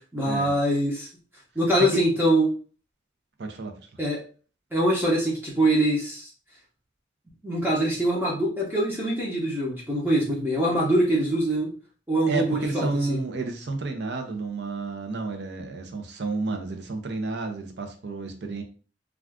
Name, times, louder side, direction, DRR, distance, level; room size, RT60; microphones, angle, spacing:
voice 1, 0.1-1.1 1.6-2.5 4.0-4.2 4.7-6.3 7.4-11.7 12.1-13.2, right 1 dB, 10° right, -4 dB, 0.7 m, -23 dB
voice 2, 3.4-3.9 12.3-18.6, right 3 dB, 65° right, 5 dB, 0.5 m, -31 dB
2.4 x 2.3 x 3.4 m, 0.38 s
head